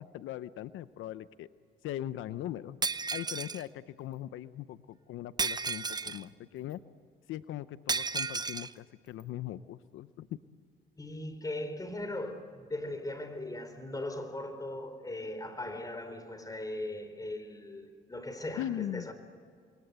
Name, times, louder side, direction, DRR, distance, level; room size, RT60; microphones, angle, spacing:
voice 1, 0.0-1.5 1.8-2.8 3.1-6.8 7.3-10.4 18.6-19.1, left 12 dB, 85° left, 0.7 m, -40 dB
Shatter, 2.8-3.6 5.4-6.2 7.9-8.7, right 4 dB, 20° right, 0.8 m, -33 dB
voice 2, 11.0-19.1, left 1 dB, 20° left, 4.0 m, -39 dB
27.0 x 23.0 x 8.2 m
cardioid pair, 90°, 20 cm